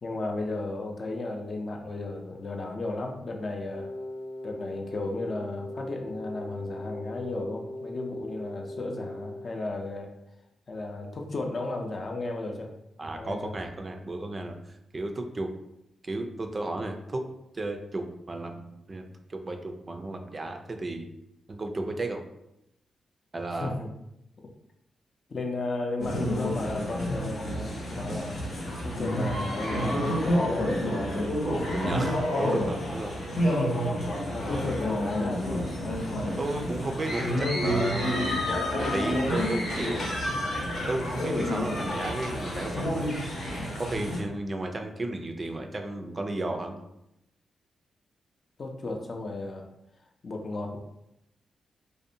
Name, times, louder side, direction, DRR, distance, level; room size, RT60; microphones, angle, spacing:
voice 1, 0.0-3.9 4.4-10.1 10.7-12.7 13.1-13.5 23.5-23.9 25.3-31.0 34.3-35.7 48.6-49.7 50.2-50.8, left 2 dB, 45° left, 2 dB, 0.4 m, -34 dB
Wind instrument woodwind instrument, 3.7-9.4, left 1 dB, 15° left, 0.8 m, -39 dB
voice 2, 13.0-14.6 14.9-15.5 16.0-17.2 17.5-21.0 21.5-22.2 23.3-23.7 31.4-33.1 36.4-40.0 40.9-43.1 43.8-46.8, right 2 dB, 35° right, 4 dB, 0.3 m, -33 dB
sound 1, 26.0-44.2, left 1 dB, 70° left, 0.8 m, -29 dB
2.6 x 2.1 x 2.6 m, 0.84 s
cardioid pair, 75°, 0 cm